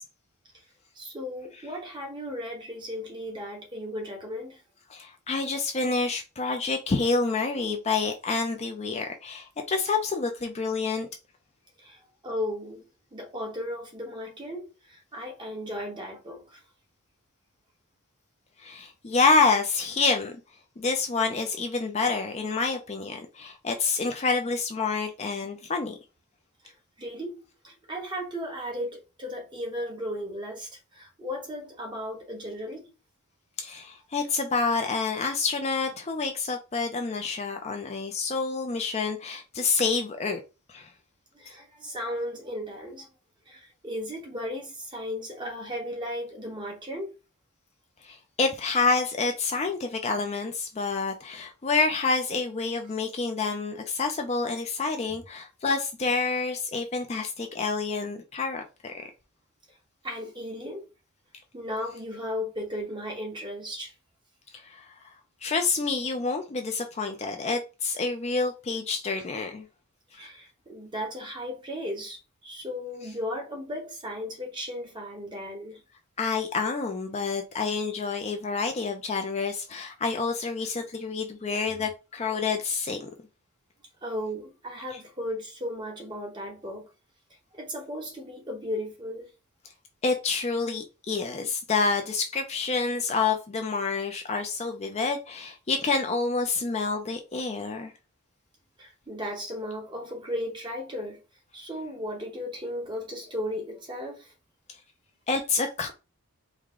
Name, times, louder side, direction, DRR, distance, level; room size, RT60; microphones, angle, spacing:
voice 1, 0.9-4.6 11.8-12.8 13.1-16.6 26.6-32.9 41.3-43.1 43.5-47.1 59.7-59.8 60.0-60.9 61.5-63.9 70.1-75.8 81.7-81.9 84.0-86.9 87.5-89.3 98.8-101.2 101.5-104.3, left 1 dB, 20° right, 1.1 m, -36 dB
voice 2, 4.9-11.1 18.6-20.4 20.8-25.9 33.6-40.4 40.7-40.9 48.0-59.1 64.5-64.9 65.4-69.7 76.2-83.1 90.0-97.9 105.3-105.9, left 4 dB, 30° left, 0.4 m, -28 dB
4.7 x 2.2 x 3.6 m
head